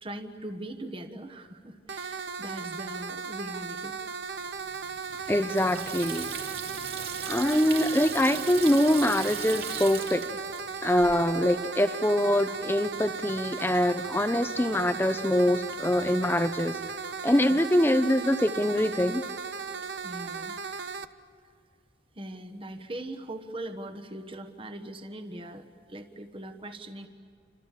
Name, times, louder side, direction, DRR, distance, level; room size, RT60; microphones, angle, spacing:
voice 1, 0.0-3.9 17.5-17.6 20.0-20.6 22.1-27.1, right 1 dB, 30° right, 1.4 m, -40 dB
sound 1, 1.9-21.1, right 5 dB, 80° right, 1.0 m, -37 dB
Water tap faucet / Sink (filling or washing), 4.5-11.2, right 7 dB, 60° right, 2.5 m, -39 dB
voice 2, 5.3-6.3 7.3-10.3 10.8-16.8 17.2-19.3, left 1 dB, 10° left, 0.7 m, -24 dB
29.5 x 26.5 x 7.5 m
head